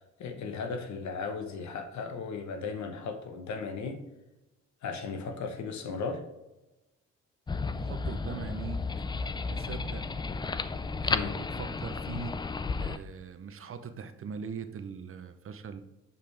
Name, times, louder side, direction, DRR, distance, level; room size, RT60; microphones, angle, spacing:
voice 1, 0.0-4.0 4.8-6.2 11.1-11.3, left 5 dB, 70° left, 6 dB, 1.1 m, -36 dB
sound 1, 7.5-13.0, left 4 dB, 15° left, 0.3 m, -33 dB
voice 2, 7.8-8.8 9.5-10.0 11.0-12.4 12.8-15.8, right 6 dB, 45° right, 9 dB, 0.7 m, -41 dB
6.9 x 5.6 x 3.3 m, 1.0 s
cardioid pair, 90°, 30 cm